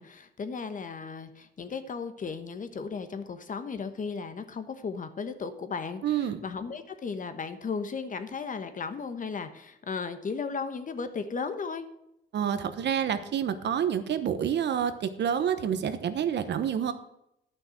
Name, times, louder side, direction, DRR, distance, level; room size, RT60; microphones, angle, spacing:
voice 1, 0.0-11.8, left 5 dB, 40° left, 9 dB, 1.2 m, -35 dB
voice 2, 6.0-6.4 12.3-16.9, right 8 dB, 60° right, 10 dB, 1.0 m, -28 dB
10.5 x 6.1 x 6.4 m, 0.81 s
cardioid pair, 90°, 20 cm